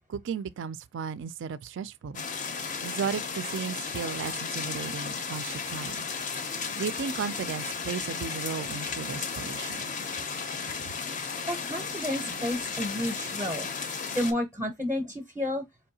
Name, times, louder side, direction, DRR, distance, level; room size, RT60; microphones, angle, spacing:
voice 1, 0.1-2.2 2.8-6.1 6.8-9.8, right 6 dB, 55° right, 0.3 m, -35 dB
sound 1, 2.1-14.3, left 5 dB, 35° left, 0.5 m, -34 dB
voice 2, 11.5-13.7 14.1-15.6, left 1 dB, 10° right, 0.6 m, -31 dB
4.4 x 2.7 x 2.7 m
head